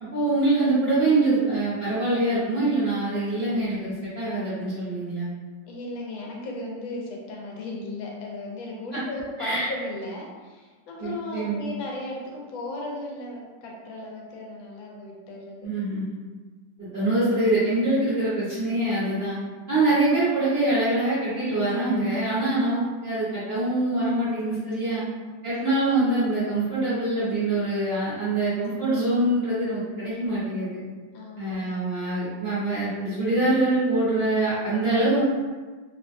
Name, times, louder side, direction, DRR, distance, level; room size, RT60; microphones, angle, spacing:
voice 1, 0.0-5.3 9.4-9.7 11.0-11.6 15.6-16.2 16.8-19.4 19.7-25.0 25.4-30.8 31.4-35.2, right 2 dB, 50° right, -12 dB, 0.7 m, -24 dB
voice 2, 5.7-15.7 19.7-19.9 24.9-25.0 30.1-30.5 31.1-31.7, left 2 dB, 90° left, -2 dB, 1.4 m, -36 dB
3.2 x 2.1 x 2.6 m, 1.3 s
omnidirectional pair, 2.0 m